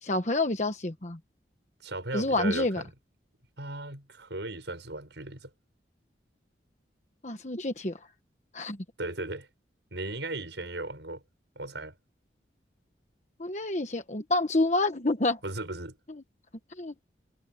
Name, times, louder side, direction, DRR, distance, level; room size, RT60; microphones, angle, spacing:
voice 1, 0.0-1.2 2.1-2.8 7.2-8.0 8.5-8.8 13.4-15.4 16.8-16.9, left 2 dB, 40° left, 1.2 m, -28 dB
voice 2, 1.8-2.9 3.6-5.5 9.0-9.5 9.9-11.2 11.6-12.0 15.4-16.0, right 2 dB, 80° right, 7.0 m, -36 dB
head